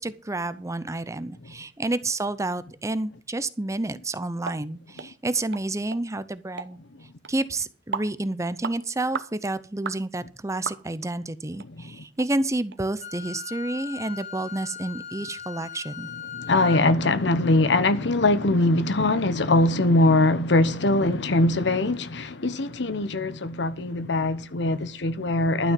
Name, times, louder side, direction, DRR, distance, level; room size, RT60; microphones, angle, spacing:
voice 1, 0.0-6.8 7.3-16.1, right 2 dB, 15° right, 0.6 m, -30 dB
sound 1, 4.4-4.6 5.0-5.1 5.5-5.6 5.9-6.0 6.6-6.7 7.2-7.3 7.9-8.1 8.6-8.8 9.1-9.3 9.8-10.0 10.7-11.1 11.6-11.7 12.2-12.3 12.7-12.8, right 5 dB, 65° right, 0.9 m, -33 dB
Wind instrument woodwind instrument, 13.0-16.9, left 7 dB, 40° left, 1.9 m, -38 dB
voice 2, 16.3-25.7, left 2 dB, 70° left, 1.0 m, -22 dB
12.0 x 6.3 x 7.5 m
head